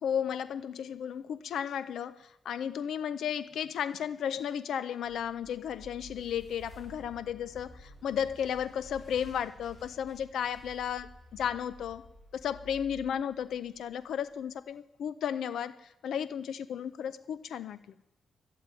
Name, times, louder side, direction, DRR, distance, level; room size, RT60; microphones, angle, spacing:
voice 1, 0.0-12.0 12.3-17.8, left 8 dB, 85° left, 14 dB, 0.4 m, -34 dB
sound 1, 5.0-14.2, left 1 dB, 45° left, 6.9 m, -52 dB
12.0 x 9.3 x 9.7 m, 0.97 s
cardioid pair, 115°, 0 cm